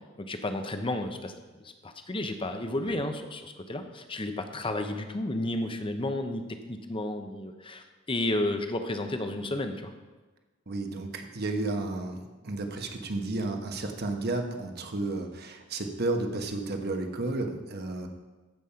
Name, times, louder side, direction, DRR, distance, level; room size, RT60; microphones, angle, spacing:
voice 1, 0.2-1.3 1.6-9.9, left 1 dB, 25° left, 7 dB, 0.8 m, -32 dB
voice 2, 10.7-18.1, right 2 dB, 50° right, 4 dB, 1.1 m, -32 dB
14.0 x 5.4 x 5.6 m, 1.3 s
head